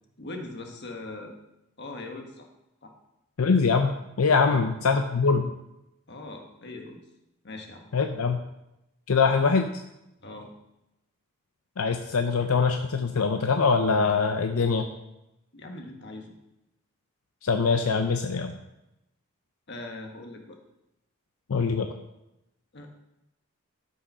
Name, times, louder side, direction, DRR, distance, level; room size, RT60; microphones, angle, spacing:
voice 1, 0.2-1.4 1.8-2.5 2.8-2.9 4.4-4.7 6.1-7.0 7.4-7.9 10.2-10.5 15.5-16.4 19.7-20.6 22.7-22.9, left 2 dB, 55° left, 3 dB, 1.5 m, -40 dB
voice 2, 3.4-5.5 7.9-8.4 9.1-9.7 11.8-14.8 17.4-18.5 21.5-21.9, left 5 dB, 80° left, 6 dB, 0.6 m, -23 dB
12.5 x 5.6 x 5.5 m, 0.91 s
head